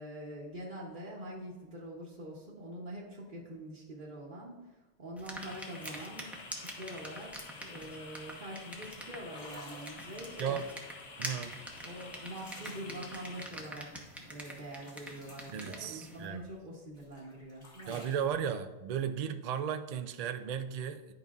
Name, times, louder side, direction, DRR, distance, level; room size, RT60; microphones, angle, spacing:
voice 1, 0.0-7.3 7.6-10.6 11.8-13.9 14.2-18.0, right 1 dB, 45° right, -5 dB, 1.1 m, -45 dB
sound 1, 5.2-16.2, equal, ahead, 0.6 m, -46 dB
sound 2, 5.4-13.5, left 4 dB, 50° left, 0.6 m, -50 dB
sound 3, 7.2-7.4 7.7-8.0 8.7-8.8 9.2-10.9 11.5-14.2 14.4-16.5 16.9-18.3, left 1 dB, 25° left, 1.3 m, -54 dB
voice 2, 11.2-11.5 15.5-16.4 17.9-21.1, right 8 dB, 75° right, 9 dB, 0.3 m, -35 dB
11.0 x 5.2 x 2.4 m, 1.1 s
omnidirectional pair, 1.2 m